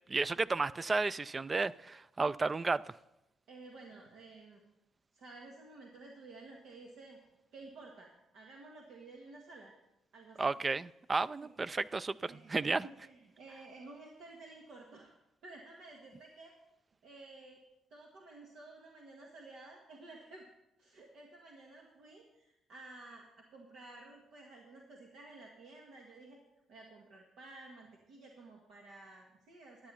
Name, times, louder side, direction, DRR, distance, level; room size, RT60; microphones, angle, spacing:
voice 1, 0.1-2.9 10.4-12.9, right 3 dB, 30° right, 18 dB, 0.3 m, -33 dB
voice 2, 3.5-4.6 5.1-7.2 7.5-9.7 10.1-10.5 12.2-12.5 12.8-15.2 15.4-16.5 17.0-17.6 17.9-20.5 20.8-26.4 26.7-29.9, right 2 dB, 75° right, 0 dB, 1.7 m, -53 dB
12.5 x 9.0 x 5.6 m, 0.92 s
cardioid pair, 90°, 0 cm